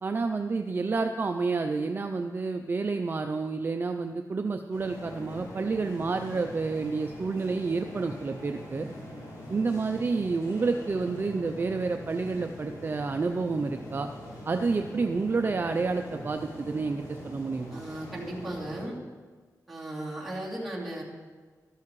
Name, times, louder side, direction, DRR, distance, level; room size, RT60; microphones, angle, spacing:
voice 1, 0.0-8.9 9.5-14.1 14.5-17.8, right 4 dB, 35° right, 6 dB, 0.4 m, -29 dB
sound 1, 4.7-18.9, equal, 85° left, 3.8 m, -43 dB
voice 2, 17.7-19.0 19.7-21.0, right 1 dB, ahead, -7 dB, 2.8 m, -36 dB
13.5 x 13.0 x 3.1 m, 1.5 s
wide cardioid pair, 140°, 7 cm